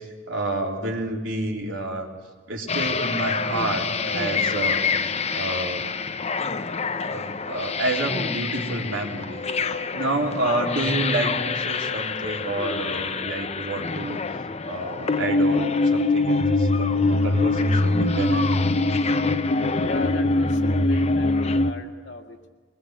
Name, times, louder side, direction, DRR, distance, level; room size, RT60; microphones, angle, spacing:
voice 1, 0.0-2.1 2.5-5.8 7.1-9.4 9.9-14.2 14.6-18.5, right 2 dB, 80° right, 0 dB, 3.6 m, -29 dB
sound 1, 2.7-21.7, left 3 dB, 35° left, 0.7 m, -24 dB
voice 2, 9.4-10.1 19.8-22.5, left 2 dB, 65° left, 4 dB, 2.2 m, -37 dB
23.5 x 21.0 x 8.2 m, 1.4 s
head